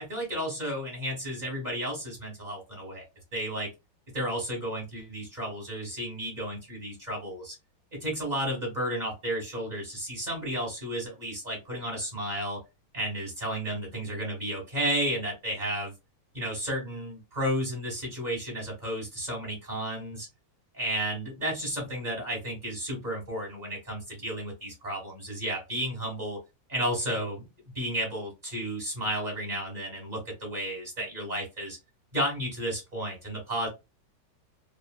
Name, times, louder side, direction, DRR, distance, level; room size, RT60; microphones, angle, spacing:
voice 1, 0.0-3.0 3.3-3.7 4.1-7.5 7.9-12.6 12.9-15.9 16.3-20.3 20.7-26.4 26.7-27.5 27.7-31.8 32.1-33.7, equal, 25° right, -3 dB, 1.2 m, -32 dB
3.5 x 2.3 x 2.2 m, 0.23 s
omnidirectional pair, 2.1 m